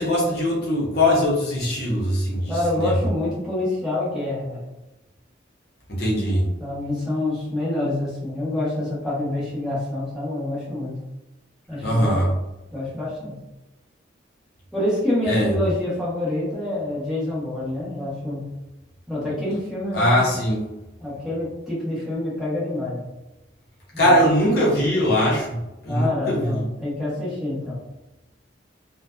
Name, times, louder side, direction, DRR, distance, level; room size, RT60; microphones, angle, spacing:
voice 1, 0.0-2.9 5.9-6.5 11.8-12.3 15.2-15.5 19.9-20.7 24.0-25.6 25.8-26.5, equal, 55° left, -5 dB, 0.7 m, -21 dB
voice 2, 2.5-4.6 6.6-11.0 11.7-12.3 12.7-13.4 14.7-18.4 19.1-20.2 21.0-23.1 24.0-24.3 25.9-27.8, left 1 dB, ahead, -9 dB, 0.8 m, -27 dB
2.5 x 2.1 x 2.3 m, 0.99 s
head